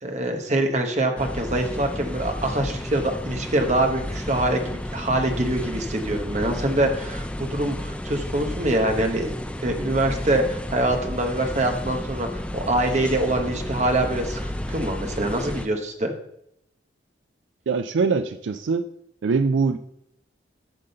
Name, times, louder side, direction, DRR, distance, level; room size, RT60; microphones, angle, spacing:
voice 1, 0.0-9.3 9.6-14.4 14.7-16.1, right 1 dB, 35° right, 4 dB, 1.1 m, -24 dB
sound 1, 1.2-15.7, left 1 dB, 5° left, 0.4 m, -32 dB
voice 2, 17.7-18.9 19.2-19.8, right 4 dB, 75° right, 9 dB, 0.4 m, -22 dB
9.6 x 3.8 x 6.6 m, 0.75 s
head